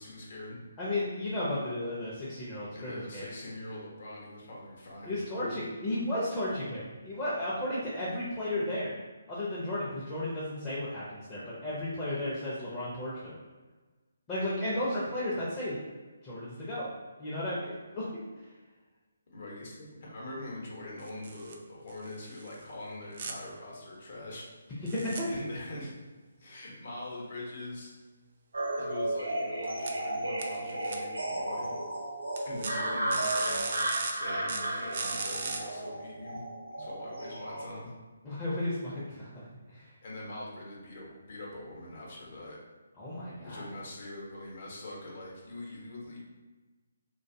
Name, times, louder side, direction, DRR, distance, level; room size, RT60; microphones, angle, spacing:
voice 1, 0.0-0.6 2.7-5.6 12.1-12.4 14.6-14.9 19.3-24.4 25.3-25.9 26.4-27.9 28.8-31.7 32.4-36.5 36.8-37.9 40.0-42.6 43.4-46.2, left 1 dB, 55° left, -4 dB, 0.9 m, -43 dB
voice 2, 0.8-3.3 5.0-9.0 9.3-13.4 14.3-15.8 16.2-16.9 17.2-18.1 24.8-25.3 38.2-39.4 39.7-39.9 43.0-43.6, left 1 dB, 15° left, -10 dB, 0.5 m, -34 dB
sound 1, 21.0-21.5 21.9-22.5 23.2-23.3 24.9-25.2 29.6-29.9 30.4-31.0 32.4-32.7 33.1-34.1 34.5-35.6, right 4 dB, 45° right, 0.3 m, -37 dB
sound 2, 28.5-37.6, right 1 dB, 80° right, 0.7 m, -34 dB
2.4 x 2.3 x 2.6 m, 1.3 s
figure-of-eight pair, 145°, 0 cm